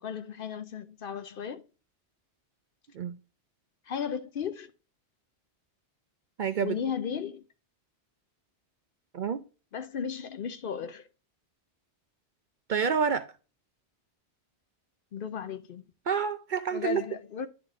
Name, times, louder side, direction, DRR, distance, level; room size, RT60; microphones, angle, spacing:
voice 1, 0.0-1.6 3.9-4.7 6.6-7.4 9.7-11.1 15.1-15.8 16.7-17.5, left 7 dB, 60° left, 0.7 m, -35 dB
voice 2, 6.4-6.8 9.1-9.4 12.7-13.3 16.1-17.0, right 6 dB, 55° right, 0.6 m, -28 dB
10.5 x 3.5 x 3.5 m
omnidirectional pair, 1.2 m